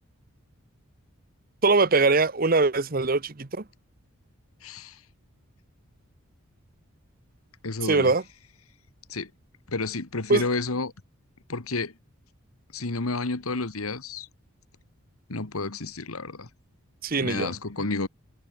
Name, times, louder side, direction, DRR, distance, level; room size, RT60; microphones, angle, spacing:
voice 1, 1.6-3.6 7.8-8.2 10.3-10.4 17.0-17.5, right 3 dB, 40° right, 0.9 m, -22 dB
voice 2, 4.6-5.0 7.6-8.1 9.1-9.3 9.7-10.9 11.5-11.9 12.7-14.3 15.3-16.5 17.2-18.1, left 3 dB, 85° left, 1.7 m, -30 dB
head